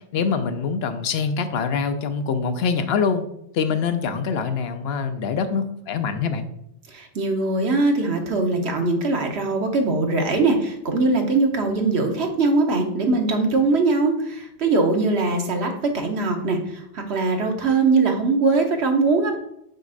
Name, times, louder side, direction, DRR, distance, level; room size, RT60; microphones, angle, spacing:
voice 1, 0.1-3.2 3.5-6.5, left 5 dB, 75° left, 9 dB, 0.8 m, -24 dB
voice 2, 6.9-19.4, right 3 dB, 90° right, 3 dB, 1.3 m, -21 dB
6.5 x 6.2 x 2.5 m, 0.75 s
omnidirectional pair, 1.1 m